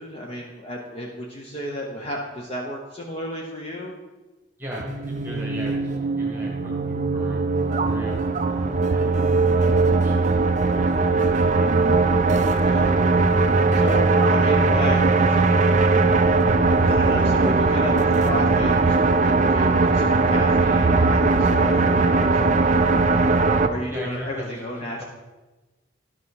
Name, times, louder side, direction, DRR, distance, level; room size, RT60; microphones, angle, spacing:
voice 1, 0.0-3.9 12.6-12.9 13.7-15.4 16.8-22.4 22.9-23.3 23.7-25.0, equal, 30° left, -1 dB, 0.9 m, -33 dB
voice 2, 4.6-8.2 8.8-9.2 9.5-11.8 23.9-24.6, equal, 10° right, -2 dB, 1.5 m, -38 dB
sound 1, 4.7-23.7, right 3 dB, 35° right, 0.5 m, -19 dB
11.5 x 6.2 x 4.7 m, 1.2 s
head